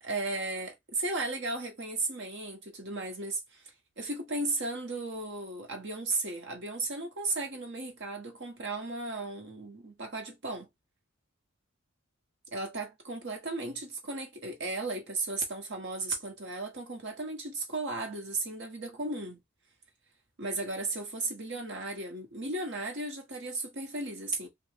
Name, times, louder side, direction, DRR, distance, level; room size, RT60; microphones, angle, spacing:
voice 1, 0.0-3.6 4.0-10.7 12.5-19.4 20.4-24.5, right 2 dB, 55° right, 1.2 m, -35 dB
3.4 x 2.4 x 3.2 m
head